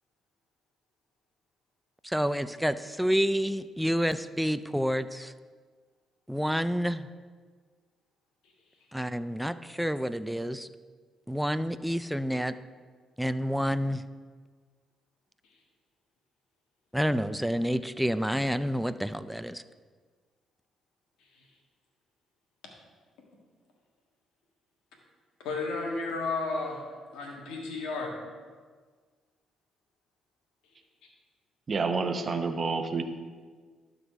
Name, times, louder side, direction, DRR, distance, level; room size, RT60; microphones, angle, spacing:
voice 1, 2.0-5.3 6.3-7.1 8.9-10.7 11.3-12.5 13.2-14.0 16.9-19.6, equal, ahead, 12 dB, 0.4 m, -29 dB
voice 2, 25.4-26.8 27.1-28.1, left 3 dB, 80° left, 0 dB, 1.6 m, -32 dB
voice 3, 31.7-33.0, right 4 dB, 45° right, 7 dB, 0.8 m, -28 dB
12.0 x 4.0 x 4.8 m, 1.5 s
hypercardioid pair, 55°, 0 cm